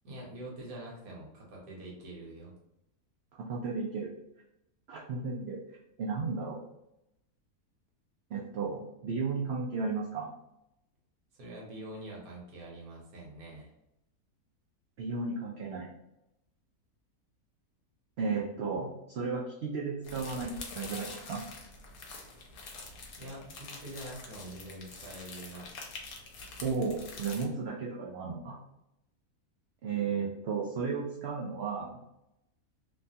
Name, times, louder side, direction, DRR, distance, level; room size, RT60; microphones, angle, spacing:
voice 1, 0.0-2.5 11.3-13.7 23.2-25.7, right 1 dB, 70° right, -3 dB, 1.4 m, -45 dB
voice 2, 3.4-4.1 4.9-5.6 6.0-6.6 8.3-10.3 15.0-15.9 18.2-21.4 26.6-28.6 29.8-32.0, right 4 dB, 90° right, -2 dB, 0.5 m, -34 dB
sound 1, 20.0-27.5, left 3 dB, 75° left, 1.1 m, -46 dB
3.1 x 2.2 x 2.7 m, 0.84 s
omnidirectional pair, 1.6 m